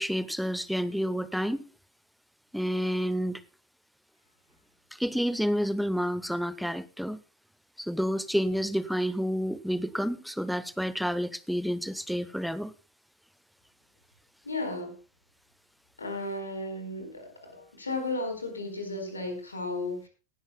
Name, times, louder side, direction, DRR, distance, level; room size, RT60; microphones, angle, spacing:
voice 1, 0.0-1.6 2.5-3.4 5.0-7.2 7.8-12.7, equal, ahead, 15 dB, 0.8 m, -29 dB
voice 2, 14.4-14.9 16.0-20.1, left 2 dB, 75° left, 6 dB, 4.3 m, -34 dB
18.5 x 13.0 x 2.2 m, 0.33 s
figure-of-eight pair, 90°, 0 cm